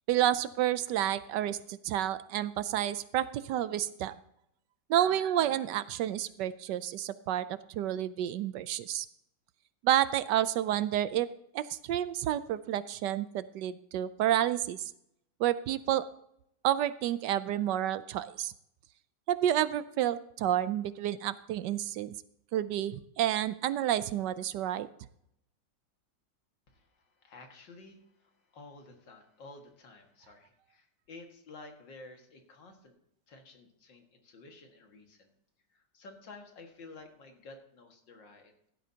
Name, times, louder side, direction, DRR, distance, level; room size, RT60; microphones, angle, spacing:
voice 1, 0.1-4.1 4.9-9.1 9.8-11.3 11.5-14.9 15.4-16.0 16.6-18.5 19.3-22.1 22.5-24.9, right 12 dB, 75° right, 15 dB, 1.1 m, -30 dB
voice 2, 26.7-33.0 33.3-35.3 35.7-38.5, left 3 dB, 75° left, 3 dB, 2.5 m, -52 dB
16.0 x 12.0 x 2.8 m, 0.75 s
omnidirectional pair, 2.0 m